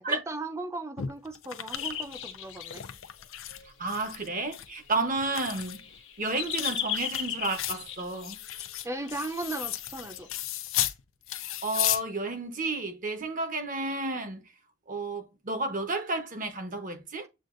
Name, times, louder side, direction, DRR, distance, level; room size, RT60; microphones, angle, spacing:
voice 1, 0.1-2.8 8.8-10.3, right 2 dB, 15° right, 0.7 m, -37 dB
sound 1, 1.0-3.6 3.9-4.7 5.1-11.0 11.3-12.0, left 12 dB, 85° left, 0.5 m, -34 dB
sound 2, 1.7-2.8 3.2-3.3 3.5-10.3, left 8 dB, 65° left, 1.0 m, -37 dB
voice 2, 3.8-5.8 6.2-8.4 11.6-14.4 14.9-17.3, right 2 dB, 40° right, 1.0 m, -31 dB
7.5 x 2.5 x 2.5 m
head